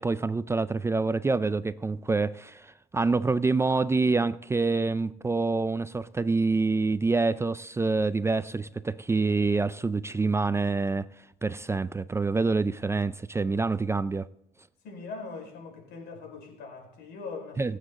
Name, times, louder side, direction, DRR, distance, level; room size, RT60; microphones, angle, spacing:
voice 1, 0.0-11.1 11.4-14.3 17.6-17.8, right 3 dB, 15° right, 15 dB, 0.4 m, -26 dB
voice 2, 14.8-17.8, left 4 dB, 80° left, 2 dB, 4.8 m, -41 dB
24.5 x 8.3 x 3.7 m, 0.77 s
cardioid pair, 110°, 17 cm